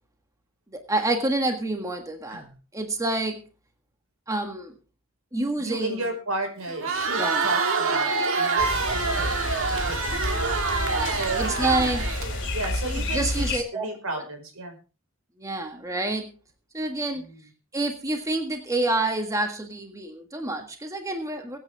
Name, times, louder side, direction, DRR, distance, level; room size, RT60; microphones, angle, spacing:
voice 1, 0.7-2.4 2.7-3.4 4.3-4.7 5.3-6.1 7.2-7.5 10.8-12.0 13.1-13.9 15.4-16.3 16.7-17.3 17.7-21.6, right 2 dB, 15° right, 4 dB, 1.7 m, -28 dB
voice 2, 5.6-12.0 12.5-14.8 17.1-17.5, right 2 dB, 85° right, 5 dB, 5.1 m, -34 dB
Crowd, 6.7-12.7, right 4 dB, 65° right, 2.1 m, -26 dB
sound 1, 8.6-13.6, left 2 dB, 60° left, 2.3 m, -30 dB
22.5 x 9.1 x 3.5 m, 0.34 s
head